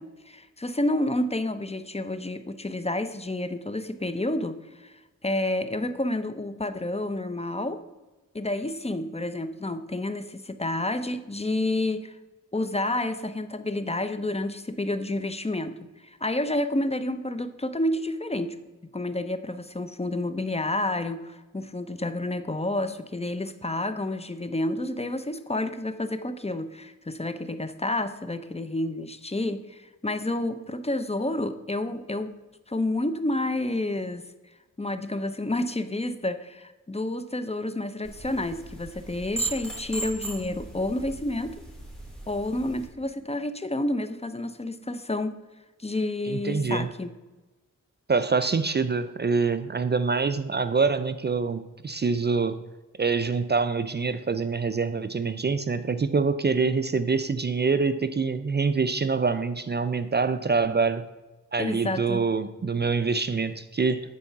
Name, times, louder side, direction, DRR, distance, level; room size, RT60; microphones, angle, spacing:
voice 1, 0.0-7.8 8.3-12.1 12.5-15.8 16.0-18.6 18.9-32.4 32.7-34.2 34.8-41.6 42.3-45.4 45.8-47.1 61.6-62.2, left 1 dB, 20° left, 10 dB, 0.7 m, -29 dB
sound 1, 38.0-42.9, right 2 dB, ahead, 2.9 m, -37 dB
voice 2, 46.3-46.9 48.1-52.6 53.0-61.1 61.5-64.0, right 4 dB, 35° right, 12 dB, 0.5 m, -25 dB
9.8 x 4.6 x 5.8 m, 1.1 s
cardioid pair, 60°, 31 cm